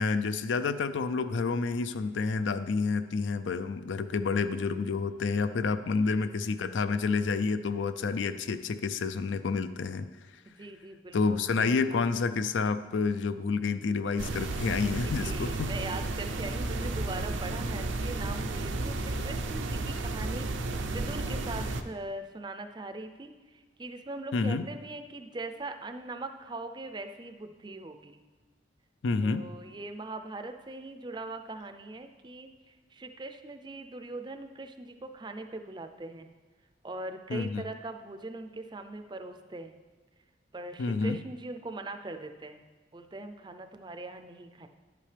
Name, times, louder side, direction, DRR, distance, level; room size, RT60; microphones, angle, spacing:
voice 1, 0.0-10.1 11.1-15.7 24.3-24.7 29.0-29.5 37.3-37.6 40.8-41.2, left 4 dB, 80° left, 12 dB, 0.4 m, -29 dB
voice 2, 10.5-12.1 14.8-28.2 29.2-36.3 36.8-39.7 40.5-42.6 42.9-44.7, right 2 dB, 25° right, 7 dB, 0.4 m, -41 dB
sound 1, 14.2-21.8, right 2 dB, 85° right, 0.6 m, -33 dB
11.0 x 8.5 x 3.3 m, 1.3 s
head